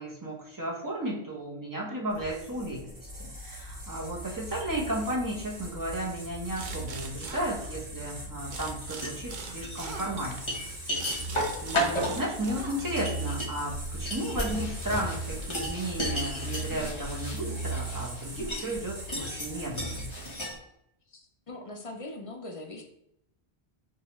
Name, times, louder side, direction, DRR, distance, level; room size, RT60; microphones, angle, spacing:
voice 1, 0.0-2.9 3.2-10.5 11.6-20.1, right 1 dB, 20° right, -3 dB, 0.7 m, -34 dB
sound 1, 2.1-20.5, right 1 dB, 75° right, 1.5 m, -39 dB
sound 2, 6.5-8.1 8.5-13.2, right 4 dB, 55° right, 0.6 m, -42 dB
sound 3, 9.0-9.2 9.6-20.5, equal, 30° left, 0.9 m, -34 dB
voice 2, 21.1-22.8, left 2 dB, 50° left, 2 dB, 0.4 m, -41 dB
4.7 x 2.3 x 2.9 m, 0.78 s
omnidirectional pair, 1.1 m